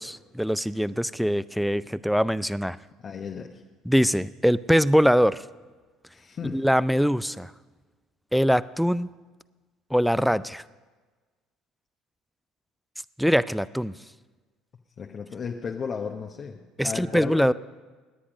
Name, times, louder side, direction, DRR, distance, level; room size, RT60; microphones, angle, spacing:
voice 1, 0.0-2.8 3.9-5.4 6.5-7.5 8.3-9.1 9.9-10.6 13.2-14.0 16.8-17.5, equal, ahead, 18 dB, 0.4 m, -23 dB
voice 2, 3.0-3.6 6.1-6.6 15.0-17.5, left 6 dB, 40° left, 1 dB, 1.1 m, -34 dB
18.0 x 10.0 x 5.1 m, 1.3 s
hypercardioid pair, 65°, 0 cm